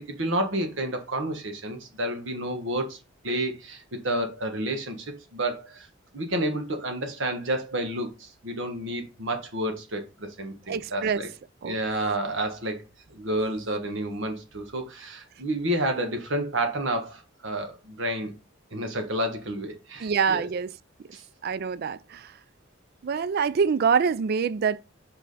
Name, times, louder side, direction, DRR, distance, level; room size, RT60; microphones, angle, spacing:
voice 1, 0.0-3.0 3.2-5.9 6.1-11.3 11.6-12.8 13.1-18.3 18.7-20.5 21.1-21.2, right 1 dB, 70° right, 1.5 m, -30 dB
voice 2, 10.7-11.2 11.6-11.8 20.0-20.7 21.4-22.4 23.0-24.8, right 6 dB, 50° right, 0.3 m, -25 dB
5.4 x 4.8 x 4.0 m
head